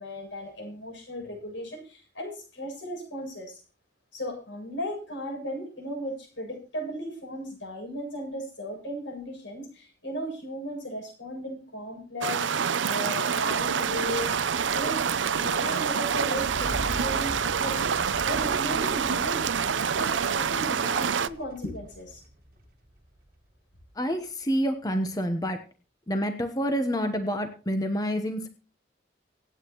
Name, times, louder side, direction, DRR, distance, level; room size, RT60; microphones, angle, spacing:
voice 1, 0.0-3.6 4.1-14.4 14.7-15.0 15.3-17.9 18.2-19.5 19.9-22.2, equal, 85° left, 2 dB, 7.4 m, -36 dB
sound 1, 12.2-21.3, right 7 dB, 85° right, 0.6 m, -27 dB
sound 2, 13.5-23.9, right 1 dB, 50° right, 1.6 m, -43 dB
voice 2, 23.9-25.6 26.1-28.5, equal, 20° left, 6 dB, 1.0 m, -28 dB
25.5 x 8.9 x 3.1 m, 0.35 s
head